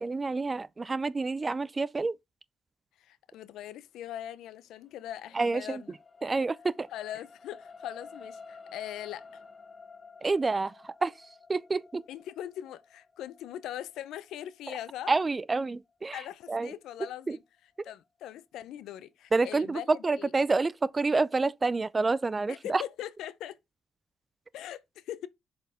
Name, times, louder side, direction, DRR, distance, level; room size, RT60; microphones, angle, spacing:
voice 1, 0.0-2.2 5.3-6.9 10.2-12.0 15.1-16.2 16.5-16.7 17.3-17.4 19.3-22.8, right 3 dB, 25° right, 0.4 m, -28 dB
voice 2, 3.0-6.0 6.9-9.4 12.1-15.1 16.1-17.4 17.8-20.3 22.5-23.6 24.5-25.3, left 11 dB, 85° left, 0.6 m, -41 dB
sound 1, 4.7-17.2 17.8-17.9, left 4 dB, 30° left, 0.9 m, -52 dB
6.8 x 4.3 x 3.5 m
cardioid pair, 90°, 0 cm